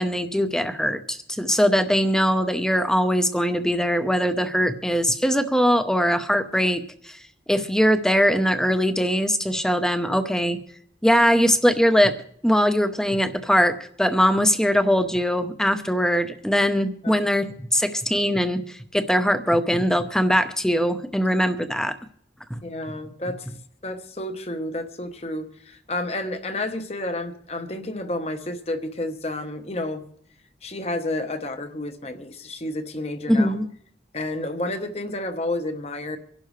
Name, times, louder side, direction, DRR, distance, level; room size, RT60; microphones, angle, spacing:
voice 1, 0.0-7.2 7.5-10.6 11.0-12.2 12.4-21.9 22.5-22.6 33.3-33.6, equal, 5° left, 9 dB, 0.8 m, -21 dB
voice 2, 22.6-23.5 23.8-30.1 30.6-33.6 34.1-36.2, left 1 dB, 35° left, 8 dB, 1.1 m, -30 dB
25.0 x 11.5 x 3.2 m, 0.66 s
head